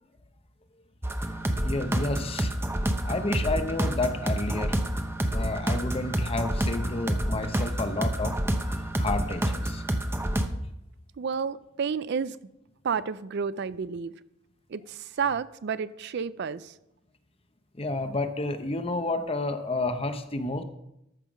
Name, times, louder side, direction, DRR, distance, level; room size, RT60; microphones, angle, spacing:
sound 1, 1.0-10.5, right 1 dB, 15° right, 0.8 m, -28 dB
voice 1, 1.5-2.5 3.0-4.7 5.3-8.4 8.6-9.8 17.7-20.6, left 2 dB, 30° left, 9 dB, 0.8 m, -30 dB
voice 2, 11.2-12.4 12.8-14.1 14.7-16.7, right 6 dB, 60° right, 16 dB, 0.4 m, -31 dB
14.0 x 5.7 x 6.1 m, 0.84 s
head